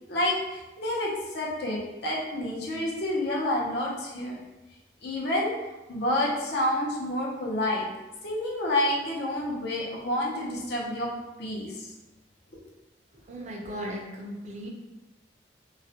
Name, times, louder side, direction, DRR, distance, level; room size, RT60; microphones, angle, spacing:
voice 1, 0.1-4.3 5.0-5.5 5.9-7.8 8.2-11.1 11.4-11.9, left 1 dB, 60° left, -4 dB, 0.6 m, -29 dB
voice 2, 13.3-14.7, equal, 40° right, -1 dB, 0.4 m, -37 dB
2.3 x 2.1 x 2.7 m, 1.0 s
head